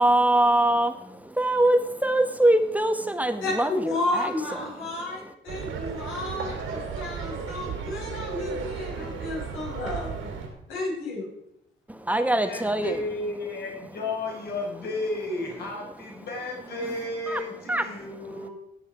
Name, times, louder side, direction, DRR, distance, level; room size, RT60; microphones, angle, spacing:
voice 1, 0.0-4.3 5.2-5.3 11.9-13.0 17.3-17.4 17.7-18.1 18.4-18.5, right 1 dB, 5° right, 9 dB, 1.1 m, -23 dB
voice 2, 3.4-10.3 10.7-11.3, left 2 dB, 90° left, -2 dB, 5.4 m, -32 dB
sound 1, 5.5-10.5, right 6 dB, 90° right, 3.2 m, -34 dB
voice 3, 12.4-18.5, left 2 dB, 55° left, -1 dB, 4.7 m, -33 dB
17.5 x 7.2 x 4.7 m, 0.78 s
cardioid pair, 90°, 20 cm